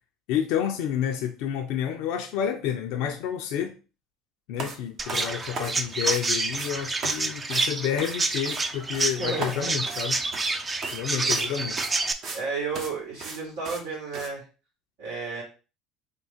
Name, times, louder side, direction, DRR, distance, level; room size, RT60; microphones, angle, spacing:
voice 1, 0.3-3.8 4.5-10.2 10.9-11.8, left 9 dB, 70° left, 0.5 m, -29 dB
sound 1, 4.6-4.8 5.1-6.3 6.5-6.7 7.0-7.2 7.5-7.7 8.0-8.6 8.9-9.2 9.4-10.5 10.8-11.0 11.3-11.5 11.8-12.4 12.7-12.9 13.2-13.4 13.6-13.8 14.1-14.3, right 3 dB, 55° right, 1.1 m, -36 dB
Chirp tweet, 5.0-12.1, right 3 dB, 25° right, 0.5 m, -28 dB
voice 2, 9.2-9.7 10.6-10.7 11.2-11.8 12.3-14.4 15.0-15.4, right 4 dB, 80° right, 2.2 m, -33 dB
3.6 x 2.7 x 4.3 m
hypercardioid pair, 80°, 0 cm